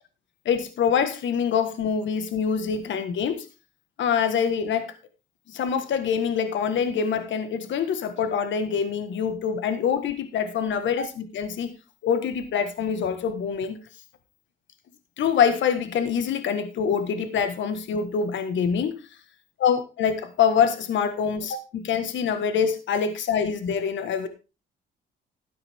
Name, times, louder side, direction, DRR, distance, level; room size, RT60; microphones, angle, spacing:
voice 1, 0.4-3.5 4.0-4.9 5.5-11.7 12.0-13.8 15.2-19.0 19.6-21.6 21.9-24.3, left 7 dB, 70° left, 10 dB, 1.6 m, -25 dB
13.0 x 9.5 x 3.6 m, 0.30 s
cardioid pair, 90°, 20 cm